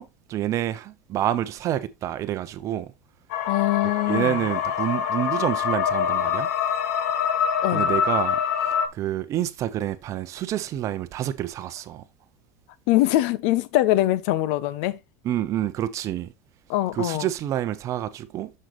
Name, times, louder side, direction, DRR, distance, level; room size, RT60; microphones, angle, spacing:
voice 1, 0.0-2.9 4.0-6.5 7.7-8.4 8.9-12.0 15.2-16.3 16.9-18.5, right 12 dB, 40° right, 0.8 m, -28 dB
sound 1, 3.3-8.9, left 8 dB, 80° left, 1.4 m, -25 dB
voice 2, 3.5-4.4 7.6-7.9 12.9-15.0 16.7-17.3, left 15 dB, 60° left, 0.8 m, -22 dB
7.8 x 6.6 x 3.1 m
supercardioid pair, 135°, 9 cm